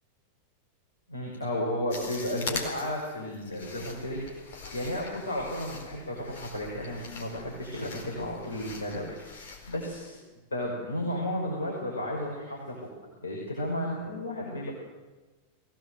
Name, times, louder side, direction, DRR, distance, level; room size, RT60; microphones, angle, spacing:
voice 1, 1.1-4.2 4.7-9.4 9.7-10.2 10.5-12.7 13.2-14.7, left 1 dB, 75° left, -3 dB, 5.9 m, -33 dB
sound 1, 1.9-10.0, left 4 dB, 55° left, 4.4 m, -42 dB
22.0 x 17.5 x 7.9 m, 1.2 s
figure-of-eight pair, 90°, 0 cm